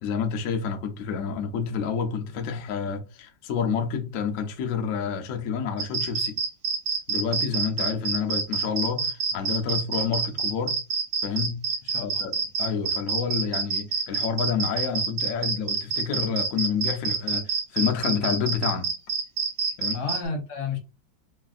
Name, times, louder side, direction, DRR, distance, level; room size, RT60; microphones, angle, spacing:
voice 1, 0.0-6.4 7.1-10.8 11.2-11.6 12.0-18.9 19.8-20.0, left 6 dB, 90° left, 0.7 m, -29 dB
sound 1, 5.8-20.2, right 5 dB, 65° right, 1.2 m, -27 dB
voice 2, 11.8-12.3 19.9-20.8, left 4 dB, 65° left, 1.2 m, -32 dB
3.2 x 2.4 x 2.4 m
omnidirectional pair, 2.0 m